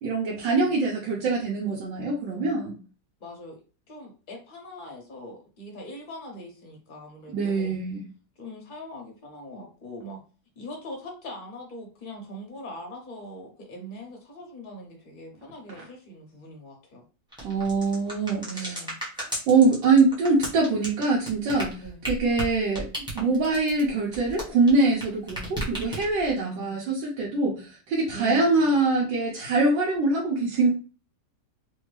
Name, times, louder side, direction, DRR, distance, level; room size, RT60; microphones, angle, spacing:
voice 1, 0.0-2.8 7.3-8.0 17.4-18.8 19.5-22.9 23.1-30.7, right 3 dB, 90° right, -3 dB, 1.4 m, -23 dB
voice 2, 3.2-3.6 3.9-7.7 8.4-10.2 10.6-17.0 18.4-19.0 21.8-22.0 26.4-26.8 28.1-28.8, equal, 50° left, 0 dB, 0.6 m, -41 dB
sound 1, 17.3-25.0 25.3-26.3, right 1 dB, 5° right, 0.7 m, -34 dB
3.4 x 2.2 x 3.1 m, 0.36 s
omnidirectional pair, 2.0 m